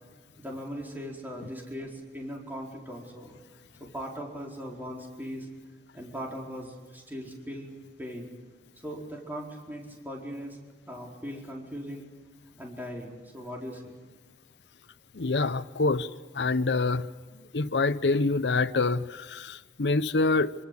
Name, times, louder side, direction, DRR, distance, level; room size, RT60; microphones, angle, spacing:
voice 1, 0.4-3.3 3.8-5.5 5.9-8.3 8.8-10.6 10.9-12.1 12.6-14.0, equal, 10° right, -1 dB, 4.5 m, -39 dB
voice 2, 15.1-17.1 17.5-20.5, left 3 dB, 80° left, 14 dB, 0.8 m, -26 dB
26.5 x 25.5 x 8.4 m, 1.4 s
head